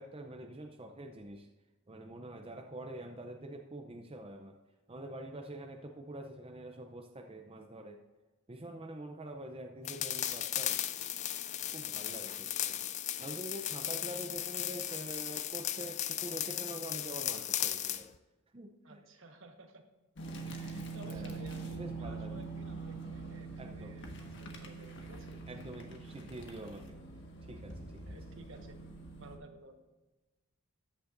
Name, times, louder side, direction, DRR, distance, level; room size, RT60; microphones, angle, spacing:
voice 1, 0.0-1.5 1.9-4.6 4.9-8.0 8.5-10.8 11.7-12.8 13.2-18.1 18.5-19.0 21.0-21.4 21.8-22.4 23.6-24.0 25.5-27.0 27.5-28.2, right 1 dB, 25° right, 3 dB, 0.6 m, -45 dB
sound 1, 9.8-18.0, left 11 dB, 30° left, 0.4 m, -36 dB
voice 2, 18.8-19.8 20.5-25.3 28.1-28.8 29.2-29.9, right 1 dB, 60° right, 5 dB, 1.3 m, -54 dB
sound 2, 20.2-29.4, right 3 dB, 55° left, 1.5 m, -44 dB
14.0 x 9.8 x 2.6 m, 1.2 s
head